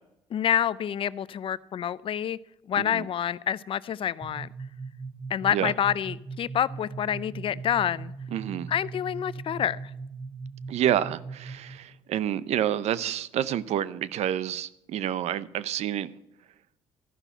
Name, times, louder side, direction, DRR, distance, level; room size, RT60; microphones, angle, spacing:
voice 1, 0.3-2.4 2.7-4.5 5.3-8.1 8.7-9.8, left 9 dB, 50° left, 0.4 m, -27 dB
voice 2, 2.8-3.1 5.5-5.7 8.3-8.7 10.7-16.1, right 11 dB, 70° right, 0.6 m, -28 dB
sound 1, 4.2-11.8, right 4 dB, 30° right, 3.1 m, -40 dB
13.5 x 5.7 x 8.0 m
cardioid pair, 90°, 12 cm